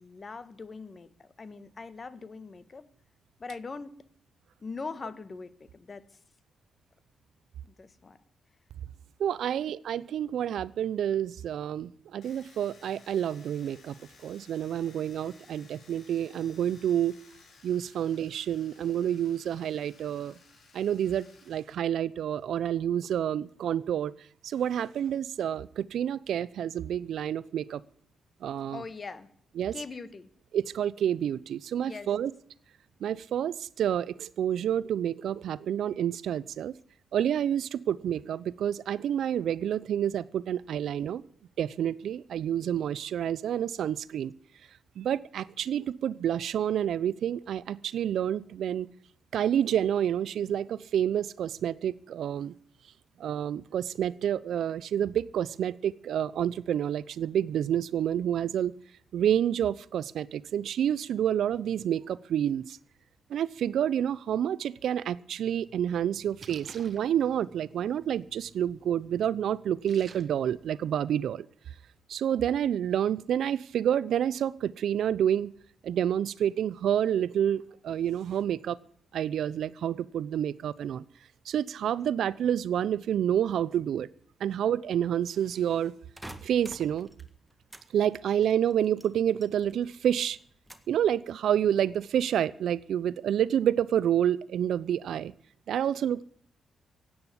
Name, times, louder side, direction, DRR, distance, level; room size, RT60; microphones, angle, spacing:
voice 1, 0.0-2.9 3.4-4.0 4.6-6.1 7.8-8.2 28.7-29.3 29.7-30.3 31.7-32.1, left 4 dB, 40° left, 14 dB, 1.5 m, -41 dB
voice 2, 9.2-14.0 14.2-17.2 17.6-20.3 20.7-24.1 24.4-27.8 28.4-28.8 29.6-29.7 30.5-32.3 33.0-36.7 37.1-41.2 41.6-44.3 45.0-48.9 49.3-52.5 53.2-58.7 59.1-62.8 63.3-71.5 72.1-75.5 75.8-78.8 79.1-81.0 81.5-84.1 84.4-85.9 86.4-87.1 87.9-90.4 90.9-95.3 95.7-96.2, right 10 dB, 75° right, 20 dB, 0.6 m, -28 dB
Domestic sounds home sounds, 12.2-21.6 21.8-22.7, left 4 dB, 65° left, 5.4 m, -58 dB
Splash splatter, 65.7-70.7, right 5 dB, 50° right, 1.7 m, -53 dB
sound 1, 86.2-87.9 88.1-89.9 90.2-91.0 91.5-91.9, right 1 dB, 5° right, 1.8 m, -48 dB
16.5 x 8.8 x 9.7 m, 0.63 s
cardioid pair, 80°, 0 cm